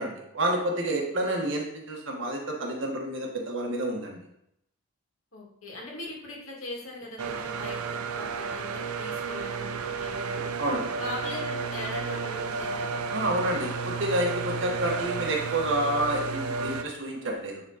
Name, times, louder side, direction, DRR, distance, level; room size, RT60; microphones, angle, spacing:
voice 1, 0.0-4.2 10.6-10.9 13.1-17.6, right 1 dB, 55° right, 0 dB, 1.4 m, -29 dB
voice 2, 5.3-10.5 11.0-12.9, left 2 dB, 65° left, -3 dB, 2.3 m, -40 dB
sound 1, 7.2-16.8, right 4 dB, 80° right, 0.5 m, -32 dB
9.2 x 3.7 x 4.2 m, 0.79 s
head